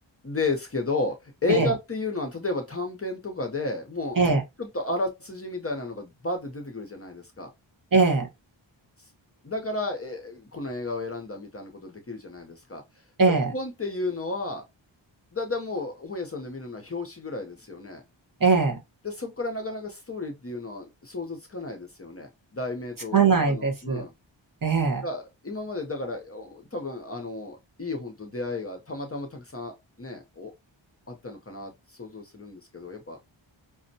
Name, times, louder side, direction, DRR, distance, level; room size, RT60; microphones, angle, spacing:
voice 1, 0.2-4.2 4.6-7.5 9.4-12.8 13.3-14.6 15.3-18.0 19.0-24.1 25.0-30.5 31.1-33.2, left 2 dB, 30° left, 0.6 m, -33 dB
voice 2, 7.9-8.3 13.2-13.5 18.4-18.8 23.1-24.0 24.6-25.0, right 4 dB, 45° right, 1.0 m, -21 dB
5.1 x 2.1 x 2.6 m
wide cardioid pair, 105°, 47 cm